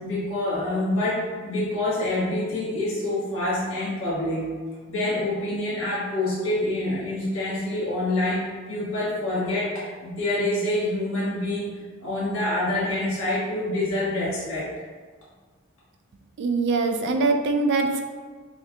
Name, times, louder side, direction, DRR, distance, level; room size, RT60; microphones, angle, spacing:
voice 1, 0.0-4.5 4.9-11.7 12.0-14.7, left 1 dB, 60° left, -8 dB, 1.4 m, -26 dB
voice 2, 16.4-18.0, right 3 dB, 50° right, 5 dB, 0.3 m, -23 dB
5.7 x 2.2 x 2.8 m, 1.5 s
head